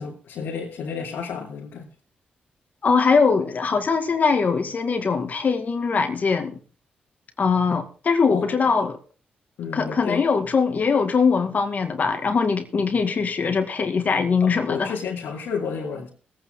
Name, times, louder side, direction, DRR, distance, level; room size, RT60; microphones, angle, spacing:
voice 1, 0.0-1.9 8.3-8.6 9.6-10.3 14.4-16.1, left 6 dB, 80° left, 3.0 m, -31 dB
voice 2, 2.8-6.6 7.4-9.0 9.7-14.9, left 5 dB, 50° left, 2.1 m, -21 dB
20.5 x 9.1 x 3.9 m
cardioid pair, 70°, 3 cm